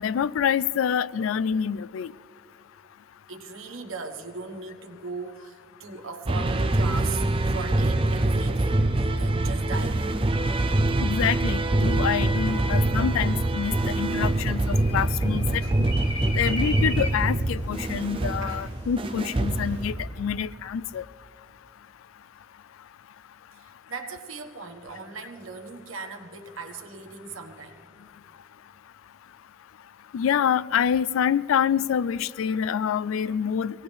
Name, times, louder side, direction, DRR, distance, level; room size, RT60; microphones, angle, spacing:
voice 1, 0.0-2.1 11.0-15.5 16.3-21.0 30.1-33.8, left 8 dB, 75° left, 0.3 m, -26 dB
voice 2, 3.3-10.2 15.3-15.8 18.4-18.7 23.5-27.9, right 4 dB, 80° right, 1.3 m, -38 dB
sound 1, 6.2-20.3, right 2 dB, 25° right, 0.5 m, -25 dB
sound 2, 14.3-19.9, equal, 30° left, 3.1 m, -39 dB
23.5 x 17.5 x 3.4 m
head